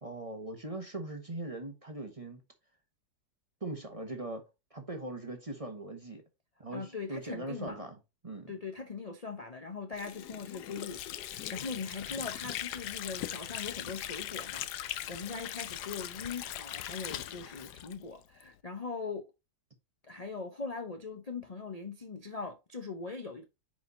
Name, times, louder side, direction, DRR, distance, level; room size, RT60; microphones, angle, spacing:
voice 1, 0.0-2.4 3.6-4.4 4.7-6.2 6.6-8.5, right 2 dB, 20° right, 1.2 m, -40 dB
voice 2, 6.7-7.9 8.5-19.3 20.0-23.4, left 4 dB, 30° left, 0.7 m, -41 dB
Water / Sink (filling or washing), 9.9-18.5, left 12 dB, 75° left, 1.2 m, -40 dB
9.5 x 4.9 x 2.7 m
omnidirectional pair, 1.8 m